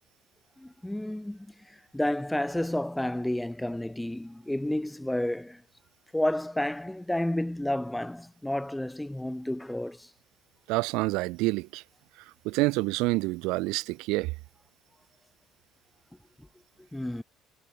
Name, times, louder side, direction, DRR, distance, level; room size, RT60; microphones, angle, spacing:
voice 1, 0.6-5.6 6.1-10.1 16.9-17.2, left 1 dB, 5° left, 4.7 m, -31 dB
voice 2, 10.7-11.8 12.5-14.3, right 23 dB, 80° right, 0.3 m, -27 dB
cardioid pair, 110°, 0 cm